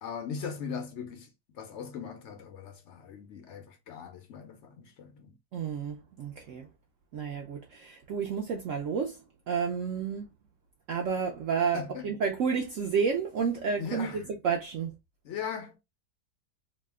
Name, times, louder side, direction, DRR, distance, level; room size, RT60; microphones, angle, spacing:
voice 1, 0.0-5.4 11.7-12.1 13.8-14.3 15.2-15.8, left 6 dB, 70° left, 0.7 m, -39 dB
voice 2, 5.5-6.7 7.1-9.2 9.5-10.3 10.9-14.9, right 6 dB, 75° right, 0.7 m, -30 dB
2.8 x 2.1 x 3.3 m
omnidirectional pair, 1.8 m